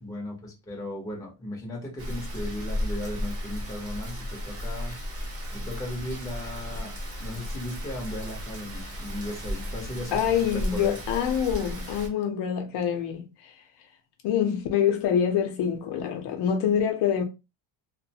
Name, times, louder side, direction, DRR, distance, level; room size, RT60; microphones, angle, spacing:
voice 1, 0.0-5.0 5.5-6.9 7.2-10.2 10.5-10.9, left 1 dB, 10° left, 0.6 m, -36 dB
Rain, 2.0-12.1, equal, 30° right, 0.9 m, -34 dB
voice 2, 10.1-13.5 14.2-17.2, left 8 dB, 60° left, 0.6 m, -26 dB
2.4 x 2.1 x 2.7 m
cardioid pair, 170°, 46 cm